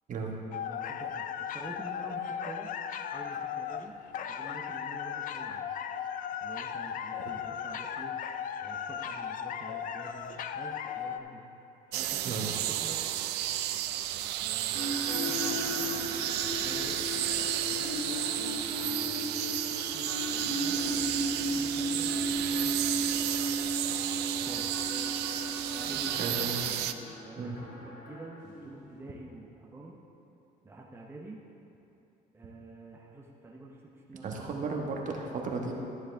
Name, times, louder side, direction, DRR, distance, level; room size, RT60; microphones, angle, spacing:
sound 1, 0.5-11.2, left 8 dB, 55° left, 0.4 m, -36 dB
voice 1, 0.7-2.7 3.1-3.9 4.3-5.7 6.4-8.2 8.6-11.4 11.9-13.0 14.4-15.9 16.6-20.8 21.4-23.5 24.2-24.9 25.7-26.5 27.2-30.0 30.6-31.4 32.3-34.8, right 2 dB, 15° right, -2 dB, 0.8 m, -48 dB
sound 2, 11.9-26.9, right 12 dB, 80° right, 0.4 m, -32 dB
sound 3, 14.7-29.0, equal, 85° left, 2.3 m, -35 dB
voice 2, 26.2-26.6 27.4-27.6 34.2-35.7, right 4 dB, 50° right, 0 dB, 1.3 m, -34 dB
12.5 x 7.3 x 3.4 m, 3.0 s
cardioid pair, 110°, 17 cm